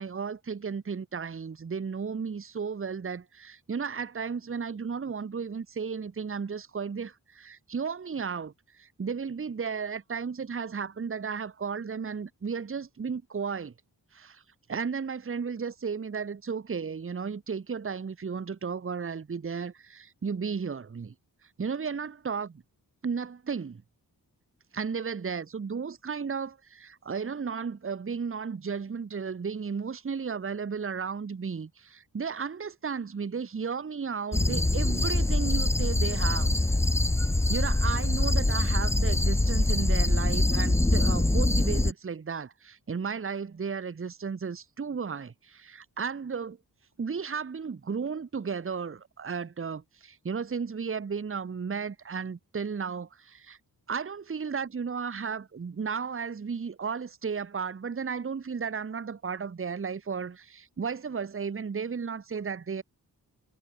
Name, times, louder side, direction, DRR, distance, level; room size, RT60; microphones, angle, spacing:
voice 1, 0.0-13.7 14.1-14.4 14.7-21.1 21.6-22.6 23.0-23.8 24.7-36.5 37.5-46.6 47.0-53.6 53.9-62.8, right 6 dB, 35° right, 1.0 m, -34 dB
sound 1, 34.3-41.9, left 2 dB, 10° left, 0.4 m, -24 dB
wide cardioid pair, 90°, 37 cm